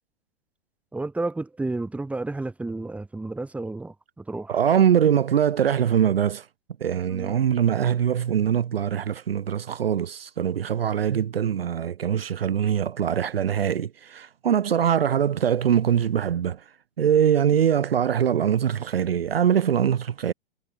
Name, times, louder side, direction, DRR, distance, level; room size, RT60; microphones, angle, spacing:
voice 1, 0.9-4.6 7.1-7.4, right 2 dB, 5° right, 1.8 m, -31 dB
voice 2, 4.5-6.5 6.8-16.6 17.0-20.3, right 9 dB, 75° right, 0.5 m, -22 dB
figure-of-eight pair, 110°, 30 cm